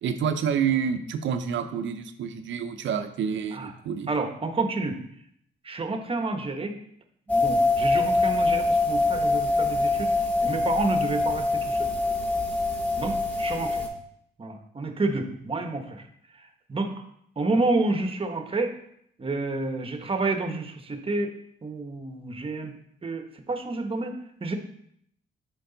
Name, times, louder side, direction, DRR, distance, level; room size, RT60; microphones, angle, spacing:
voice 1, 0.0-4.1, right 7 dB, 70° right, 8 dB, 0.7 m, -28 dB
voice 2, 4.1-5.0 5.6-6.8 7.3-10.1 10.4-11.9 13.0-13.8 14.4-16.1 16.3-16.9 17.4-18.8 19.2-21.3 21.6-22.7 23.0-24.5, right 3 dB, 30° right, 6 dB, 1.0 m, -29 dB
sound 1, 7.3-13.9, left 3 dB, 5° left, 1.7 m, -24 dB
6.7 x 4.7 x 3.9 m, 0.71 s
cardioid pair, 90°, 20 cm